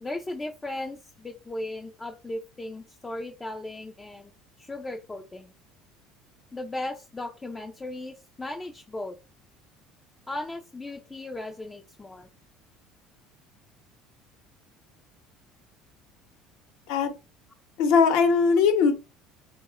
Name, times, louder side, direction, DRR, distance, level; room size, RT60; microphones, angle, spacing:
voice 1, 0.0-4.3 4.6-5.5 6.5-9.2 10.3-12.3, left 2 dB, 10° left, 3 dB, 0.3 m, -36 dB
voice 2, 17.8-18.9, left 5 dB, 75° left, 7 dB, 0.8 m, -20 dB
3.5 x 2.1 x 3.4 m, 0.29 s
cardioid pair, 160°, 0 cm